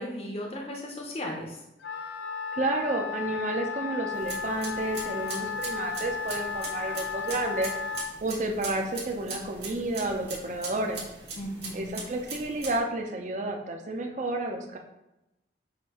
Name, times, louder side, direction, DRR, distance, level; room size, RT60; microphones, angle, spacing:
voice 1, 0.0-1.6 11.4-11.9, left 1 dB, 35° left, 0 dB, 0.6 m, -36 dB
Wind instrument woodwind instrument, 1.8-8.2, left 6 dB, 80° left, 0.4 m, -34 dB
voice 2, 2.5-7.7 8.2-11.0 11.7-14.8, right 2 dB, 40° right, 2 dB, 0.5 m, -31 dB
sound 1, 4.1-12.8, right 3 dB, 65° right, 1.3 m, -41 dB
6.5 x 2.6 x 2.9 m, 0.92 s
head